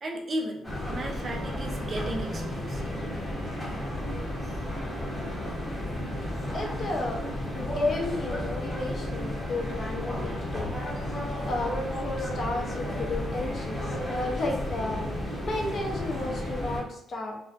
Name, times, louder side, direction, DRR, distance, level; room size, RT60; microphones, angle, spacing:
voice 1, 0.0-0.6 0.9-2.8, right 1 dB, 40° right, 1 dB, 0.5 m, -34 dB
sound 1, 0.6-16.8, left 1 dB, 5° left, 0.9 m, -33 dB
voice 2, 6.5-7.2 7.5-10.7 11.2-15.0 15.4-17.4, left 2 dB, 50° left, 0 dB, 0.6 m, -33 dB
2.6 x 2.1 x 2.4 m, 0.72 s
cardioid pair, 90°, 0 cm